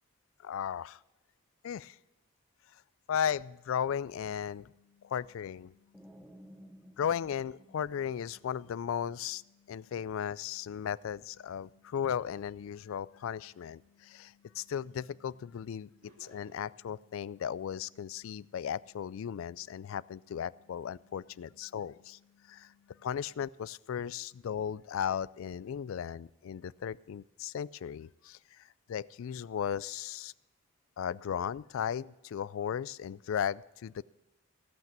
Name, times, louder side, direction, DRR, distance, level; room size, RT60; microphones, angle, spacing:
voice 1, 0.4-1.0 1.6-2.0 3.1-4.7 5.0-5.7 7.0-9.4 9.7-15.9 16.2-22.2 22.5-22.7 23.0-30.3 31.0-34.0, left 8 dB, 75° left, 20 dB, 0.3 m, -36 dB
sound 1, 4.2-23.2, left 8 dB, 15° left, 2.6 m, -68 dB
sound 2, 5.9-8.7, equal, 5° right, 0.6 m, -55 dB
sound 3, 16.0-16.9, right 1 dB, 90° right, 2.5 m, -59 dB
16.0 x 5.9 x 7.5 m, 0.97 s
head